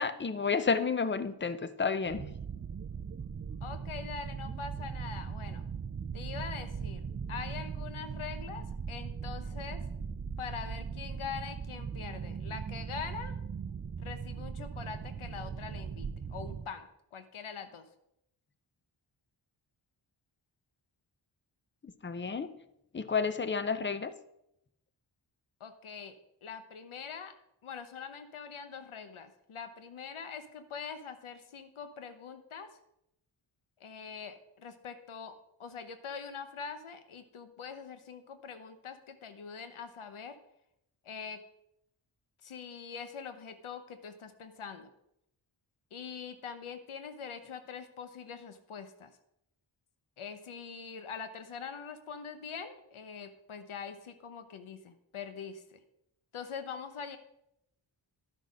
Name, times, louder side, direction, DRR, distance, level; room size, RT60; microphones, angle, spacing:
voice 1, 0.0-2.2 22.0-22.5 22.9-24.1, left 5 dB, 25° left, 12 dB, 0.6 m, -31 dB
sound 1, 2.0-16.7, right 6 dB, 30° right, 0.4 m, -39 dB
voice 2, 3.6-5.6 6.1-7.0 7.3-9.8 10.4-13.3 14.0-17.9 25.6-26.1 26.4-27.3 27.6-32.7 33.8-40.4 41.0-41.4 42.4-44.9 45.9-49.1 50.2-55.8 56.3-57.2, left 6 dB, 85° left, 9 dB, 1.0 m, -43 dB
11.5 x 6.3 x 5.1 m, 0.79 s
wide cardioid pair, 110°, 48 cm